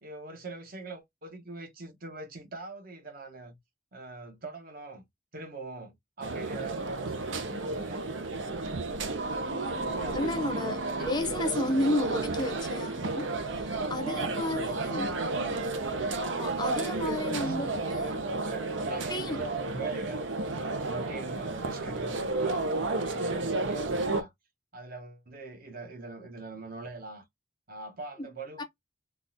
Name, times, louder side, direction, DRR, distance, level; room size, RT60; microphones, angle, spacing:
voice 1, 0.0-3.6 3.9-5.0 5.3-8.0 9.8-10.2 14.2-15.6 17.0-17.9 18.3-20.2 20.5-24.3 24.7-27.2 27.7-28.6, right 3 dB, 50° right, 1.0 m, -43 dB
sound 1, 6.2-24.2, right 3 dB, 85° right, 0.7 m, -32 dB
voice 2, 9.4-15.1 16.2-18.2 19.1-19.4 28.2-28.3 28.6-28.7, left 1 dB, 25° left, 0.5 m, -33 dB
3.8 x 2.4 x 2.6 m
head